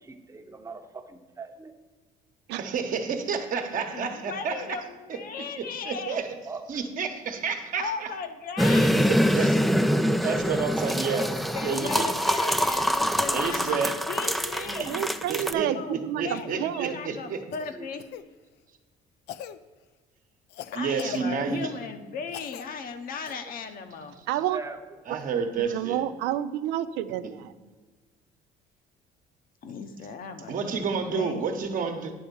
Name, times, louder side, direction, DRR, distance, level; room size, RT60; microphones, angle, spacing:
voice 1, 0.0-1.7 6.5-6.6 14.7-14.9 17.7-17.9 24.5-24.8, right 4 dB, 20° right, 6 dB, 0.8 m, -40 dB
voice 2, 2.6-4.6 5.6-6.3 6.7-8.1 9.1-9.5 10.2-11.3 11.6-12.0 13.3-14.0 15.3-15.7 16.2-17.4 20.7-21.7 25.1-26.0 30.5-32.1, right 5 dB, 55° right, 5 dB, 1.1 m, -30 dB
voice 3, 3.9-6.2 7.8-9.5 11.1-15.0 15.5-18.0 20.7-24.2 29.6-31.6, left 5 dB, 60° left, 7 dB, 0.9 m, -37 dB
Making Tea, 8.6-15.5, equal, ahead, 0.3 m, -24 dB
voice 4, 14.9-16.9 24.3-24.6 25.6-27.5, right 12 dB, 85° right, 12 dB, 0.4 m, -30 dB
Cough, 16.3-16.6 17.5-18.2 19.3-19.6 20.5-21.7 22.3-22.7 23.2-23.3 25.2-25.3, left 11 dB, 80° left, 0.4 m, -40 dB
10.0 x 3.5 x 6.8 m, 1.4 s
cardioid pair, 110°, 17 cm